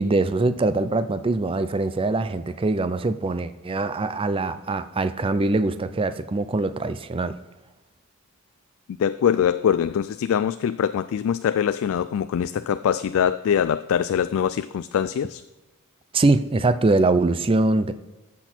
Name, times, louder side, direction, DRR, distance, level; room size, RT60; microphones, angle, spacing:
voice 1, 0.0-7.4 16.1-17.9, right 2 dB, 25° right, 12 dB, 0.4 m, -23 dB
voice 2, 9.0-15.4, left 8 dB, 65° left, 13 dB, 0.3 m, -23 dB
14.0 x 6.1 x 4.3 m, 1.1 s
head